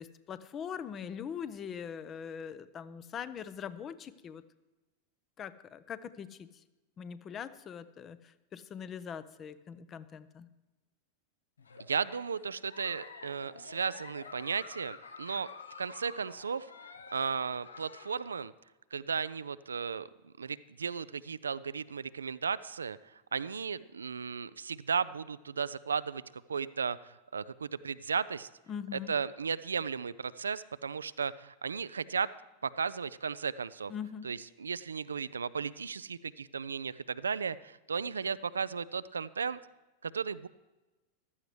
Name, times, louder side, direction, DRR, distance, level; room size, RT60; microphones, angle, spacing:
voice 1, 0.0-4.4 5.4-6.6 7.0-10.5 28.7-29.1 33.9-34.3, left 7 dB, 25° left, 15 dB, 0.6 m, -42 dB
Giggle, 11.6-18.3, left 4 dB, 70° left, 0.8 m, -49 dB
voice 2, 11.9-15.5 15.8-18.5 18.9-20.1 20.4-26.2 26.5-28.5 29.1-32.3 32.6-33.9 34.2-39.6 40.0-40.5, right 6 dB, 70° right, 16 dB, 0.3 m, -35 dB
15.0 x 12.5 x 3.2 m, 1.1 s
figure-of-eight pair, 90°, 0 cm